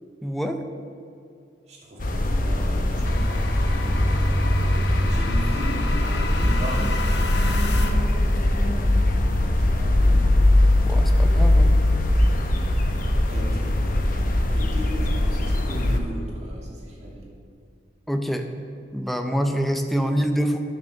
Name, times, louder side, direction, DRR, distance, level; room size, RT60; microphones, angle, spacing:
voice 1, 0.2-0.6 10.8-11.8 18.1-18.5 18.9-20.6, equal, ahead, 5 dB, 0.7 m, -25 dB
voice 2, 1.7-4.1 5.1-7.8 9.3-10.2 12.1-12.4 13.3-13.7 14.5-17.3, equal, 40° right, -5 dB, 2.6 m, -37 dB
sound 1, 2.0-16.0, left 1 dB, 50° left, 0.8 m, -21 dB
sound 2, 3.0-8.2, left 3 dB, 70° left, 1.0 m, -34 dB
9.5 x 6.6 x 6.4 m, 2.4 s
head